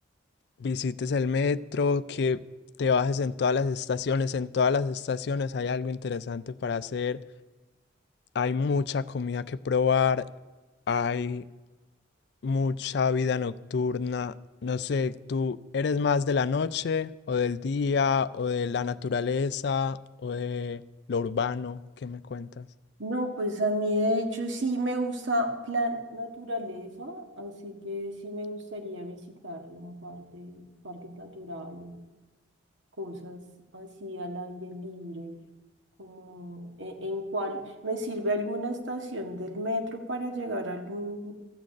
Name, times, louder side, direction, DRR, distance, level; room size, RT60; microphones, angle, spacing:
voice 1, 0.6-2.4 2.8-7.2 8.3-10.3 10.9-11.4 12.4-14.4 14.6-20.8 21.1-22.7, left 5 dB, 60° left, 14 dB, 0.4 m, -27 dB
voice 2, 23.0-32.0 33.0-33.4 33.7-35.3 36.0-41.3, equal, 75° right, 4 dB, 1.8 m, -32 dB
13.5 x 6.5 x 8.5 m, 1.2 s
head